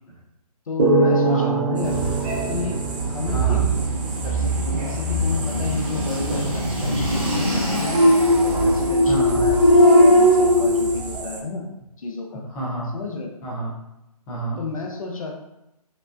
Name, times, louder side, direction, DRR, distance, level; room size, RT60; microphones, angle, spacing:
voice 1, 0.7-2.0 2.5-2.8 3.1-3.7 4.2-8.0 8.4-11.7 12.0-12.4 12.9-13.3 14.6-15.4, left 3 dB, 60° left, 1 dB, 0.8 m, -32 dB
sound 1, 0.8-4.2, right 2 dB, 60° right, 1.3 m, -23 dB
voice 2, 1.2-1.7 3.3-3.6 9.0-9.4 12.5-12.9 13.4-13.8 14.3-14.6, right 2 dB, 10° left, -7 dB, 0.4 m, -28 dB
sound 2, 1.8-11.2, equal, 20° right, 1.0 m, -19 dB
sound 3, 1.8-11.4, right 3 dB, 85° right, 0.6 m, -36 dB
5.3 x 2.2 x 2.5 m, 0.89 s
figure-of-eight pair, 150°, 20 cm